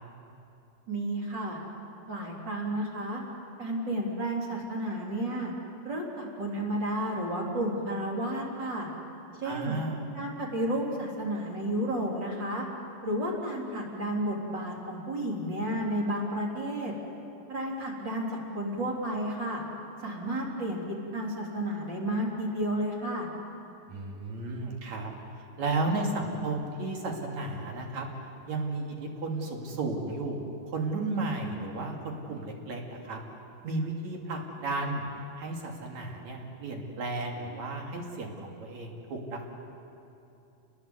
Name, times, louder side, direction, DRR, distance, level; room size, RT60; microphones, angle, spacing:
voice 1, 0.9-1.6 2.1-3.2 3.6-5.5 5.8-8.9 9.3-9.8 10.1-12.7 13.0-16.9 17.5-19.6 20.0-20.8 21.1-23.3, right 1 dB, 35° right, -2 dB, 4.2 m, -32 dB
voice 2, 9.4-10.0 23.9-25.1 25.4-28.1 28.5-33.2 33.6-35.1 35.4-39.5, right 2 dB, 60° right, 1 dB, 3.9 m, -33 dB
29.0 x 20.5 x 8.1 m, 2.8 s
omnidirectional pair, 3.7 m